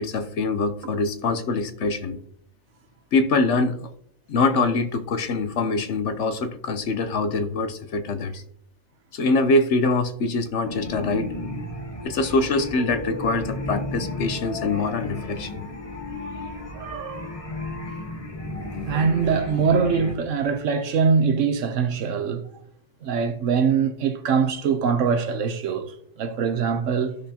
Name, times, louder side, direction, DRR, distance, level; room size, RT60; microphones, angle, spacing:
voice 1, 0.0-2.2 3.1-3.9 4.3-8.4 9.1-11.3 12.0-15.6, left 3 dB, 65° left, 1.0 m, -24 dB
sound 1, 10.6-20.1, left 2 dB, 25° left, 1.3 m, -33 dB
voice 2, 16.7-17.4 18.8-22.5 23.0-27.2, right 6 dB, 70° right, 1.1 m, -23 dB
14.0 x 6.3 x 2.8 m
omnidirectional pair, 1.4 m